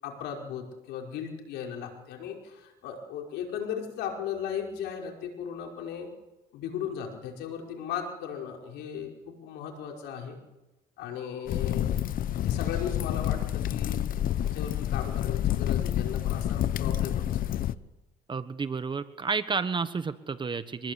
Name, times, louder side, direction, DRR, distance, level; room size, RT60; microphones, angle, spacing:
voice 1, 0.0-6.1 6.5-10.4 11.0-11.9 12.4-14.0 14.4-17.7, left 8 dB, 85° left, 2 dB, 5.4 m, -37 dB
sound 1, 11.5-17.7, left 11 dB, 55° left, 0.9 m, -28 dB
voice 2, 18.3-20.9, right 5 dB, 30° right, 11 dB, 1.3 m, -31 dB
25.5 x 20.5 x 8.5 m, 1.0 s
cardioid pair, 110°, 17 cm